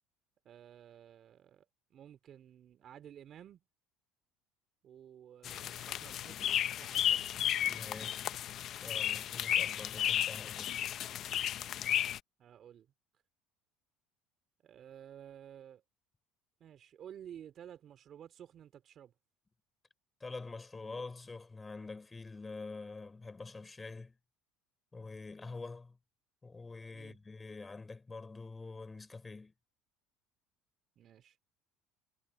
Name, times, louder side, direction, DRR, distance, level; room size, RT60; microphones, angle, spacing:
voice 1, 0.4-3.6 4.8-7.3 12.4-12.9 14.6-15.8 16.6-19.1 26.9-27.2 31.0-31.4, right 9 dB, 40° right, 4.2 m, -53 dB
sound 1, 5.4-12.2, left 11 dB, 45° left, 0.6 m, -33 dB
voice 2, 7.7-8.4 8.8-10.8 20.2-24.2 24.9-26.0 26.4-29.5, left 3 dB, 15° left, 4.4 m, -46 dB
cardioid pair, 125°, 0 cm